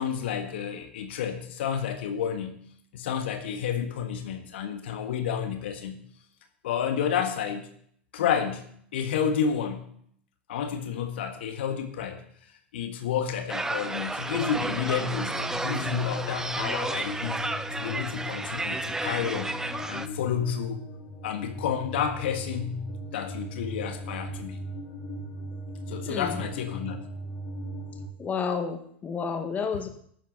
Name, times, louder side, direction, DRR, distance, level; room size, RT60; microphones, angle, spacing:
voice 1, 0.0-2.6 2.9-6.0 6.6-7.7 8.1-9.9 10.5-12.2 12.7-17.4 17.7-19.5 19.8-20.8 21.2-22.9 23.1-24.6 25.9-27.0, left 8 dB, 65° left, 6 dB, 1.6 m, -30 dB
sound 1, 13.5-20.1, right 2 dB, 10° right, 0.9 m, -32 dB
sound 2, 14.4-28.1, equal, 45° left, 4.2 m, -39 dB
voice 2, 26.1-26.4 28.2-29.9, left 5 dB, 25° left, 6 dB, 1.8 m, -30 dB
14.5 x 11.0 x 4.1 m, 0.64 s
figure-of-eight pair, 85°, 6 cm